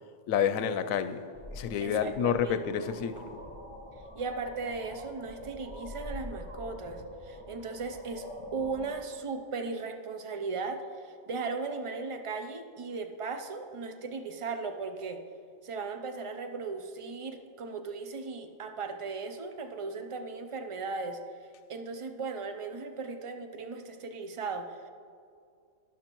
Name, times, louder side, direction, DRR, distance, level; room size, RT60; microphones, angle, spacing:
voice 1, 0.3-1.2 1.5-3.3, left 8 dB, 90° left, 11 dB, 1.0 m, -29 dB
sound 1, 1.3-9.0, left 1 dB, 20° right, 1.1 m, -44 dB
voice 2, 1.8-2.7 4.1-8.3 8.5-15.2 15.6-21.2 21.7-24.9, right 4 dB, 40° right, 6 dB, 0.5 m, -37 dB
12.5 x 11.0 x 3.0 m, 2.3 s
omnidirectional pair, 1.4 m